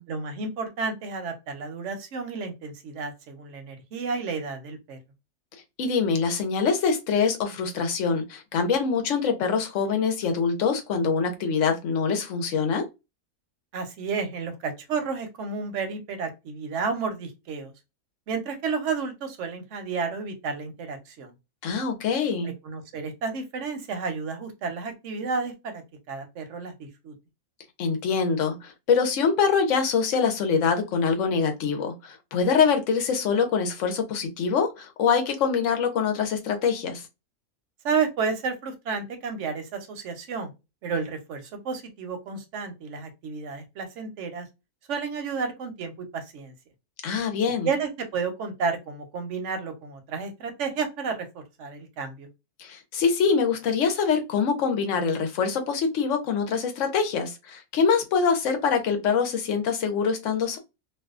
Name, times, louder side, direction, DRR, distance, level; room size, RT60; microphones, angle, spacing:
voice 1, 0.1-5.0 13.7-17.7 18.3-21.3 22.4-25.8 26.1-27.1 37.8-40.5 40.8-44.5 44.9-46.5 47.6-52.3, right 5 dB, 60° right, 0.9 m, -31 dB
voice 2, 5.8-12.9 21.6-22.5 27.8-37.0 47.0-47.7 52.6-60.6, left 5 dB, 65° left, 0.9 m, -24 dB
2.6 x 2.2 x 2.4 m
omnidirectional pair, 1.6 m